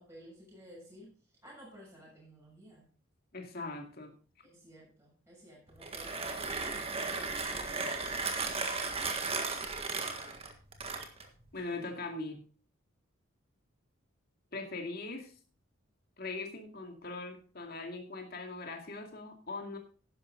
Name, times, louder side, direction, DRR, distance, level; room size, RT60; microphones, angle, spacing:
voice 1, 0.0-2.9 4.4-8.2, equal, 15° right, -5 dB, 6.8 m, -55 dB
voice 2, 3.3-4.1 11.5-12.4 14.5-15.3 16.2-19.8, left 3 dB, 45° left, 3 dB, 2.4 m, -40 dB
Mechanisms, 5.7-11.4, right 4 dB, 30° right, 1.6 m, -35 dB
12.0 x 10.5 x 3.9 m, 0.39 s
head